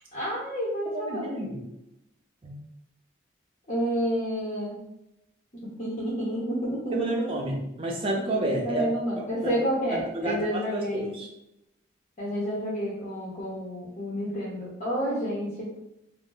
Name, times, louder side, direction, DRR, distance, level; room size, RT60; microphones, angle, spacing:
voice 1, 0.1-1.4 3.7-4.8 5.8-7.4 8.6-11.1 12.2-15.9, equal, 40° left, -6 dB, 0.7 m, -30 dB
voice 2, 0.9-1.7 2.4-2.6 6.9-8.9 9.2-9.5 10.1-11.3, right 1 dB, 30° right, -1 dB, 0.5 m, -30 dB
2.5 x 2.1 x 3.7 m, 0.85 s
head